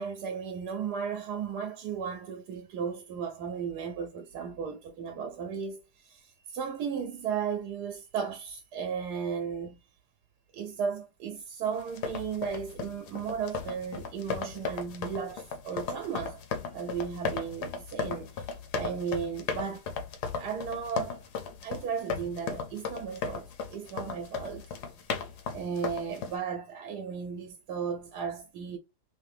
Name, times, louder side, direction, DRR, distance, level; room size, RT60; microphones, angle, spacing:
voice 1, 0.0-9.8 10.5-16.4 16.7-18.4 18.7-19.9 20.4-21.2 21.6-24.6 25.5-28.8, right 7 dB, 80° right, 1.2 m, -35 dB
sound 1, 11.8-26.3, left 5 dB, 90° left, 1.3 m, -36 dB
3.0 x 2.7 x 3.4 m
omnidirectional pair, 1.7 m